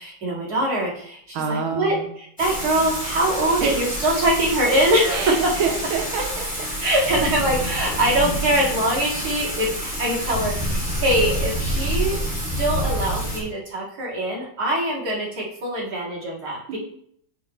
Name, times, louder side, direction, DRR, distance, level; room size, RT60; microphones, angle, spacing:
voice 1, 0.0-5.5 6.8-12.2 12.6-16.8, right 1 dB, 50° right, -4 dB, 2.3 m, -23 dB
voice 2, 1.3-2.1 3.6-3.9 5.1-6.5 6.9-7.0 16.7-16.8, right 5 dB, 85° right, 2 dB, 1.7 m, -27 dB
Thunder / Rain, 2.4-13.4, equal, 5° left, 2.4 m, -27 dB
6.0 x 4.0 x 4.9 m, 0.67 s
omnidirectional pair, 2.2 m